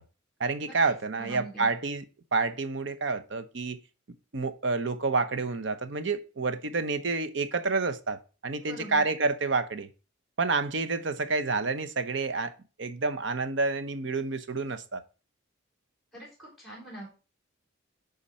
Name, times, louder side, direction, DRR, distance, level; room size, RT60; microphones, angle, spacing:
voice 1, 0.4-2.0 2.3-3.8 4.3-9.9 10.4-12.5 12.8-15.0, right 3 dB, 60° right, 0.7 m, -29 dB
voice 2, 1.2-1.7 8.7-9.0 16.1-17.1, right 2 dB, ahead, 3.8 m, -43 dB
10.5 x 3.9 x 4.2 m
head